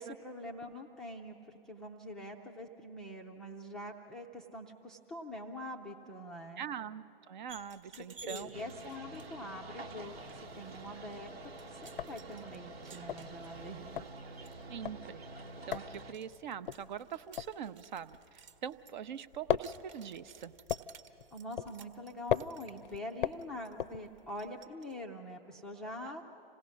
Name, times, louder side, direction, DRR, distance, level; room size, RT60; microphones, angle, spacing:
voice 1, 0.0-6.7 7.9-10.2 10.5-11.4 11.6-14.1 21.3-26.2, left 1 dB, ahead, -1 dB, 0.4 m, -45 dB
voice 2, 6.6-8.5 14.7-15.2 15.6-20.5 26.0-26.1, right 8 dB, 50° right, 14 dB, 0.6 m, -43 dB
sound 1, 7.5-24.9, right 6 dB, 35° right, 1.0 m, -57 dB
sound 2, 8.5-16.1, right 2 dB, 85° right, 1.4 m, -48 dB
sound 3, 10.6-11.1 11.4-11.5 11.8-18.9 19.1-24.5, left 10 dB, 60° left, 0.5 m, -38 dB
27.0 x 16.5 x 6.2 m, 3.0 s
hypercardioid pair, 130°, 30 cm